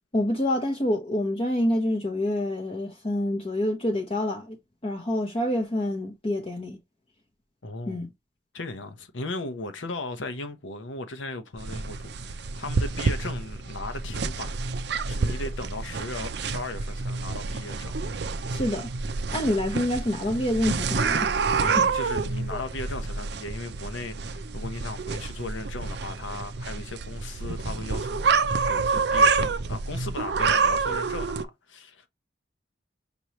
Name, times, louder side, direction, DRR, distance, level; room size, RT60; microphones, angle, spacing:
voice 1, 0.1-4.6 4.8-6.8 7.9-8.1 18.5-18.9 19.3-21.3 21.7-21.8 22.5-22.6, left 1 dB, 30° left, 0.8 m, -27 dB
voice 2, 7.6-8.0 8.5-14.6 15.1-18.0 21.6-32.1, left 2 dB, 80° left, 0.9 m, -37 dB
sound 1, 11.6-31.4, right 4 dB, 60° right, 0.5 m, -28 dB
5.4 x 3.0 x 3.0 m
head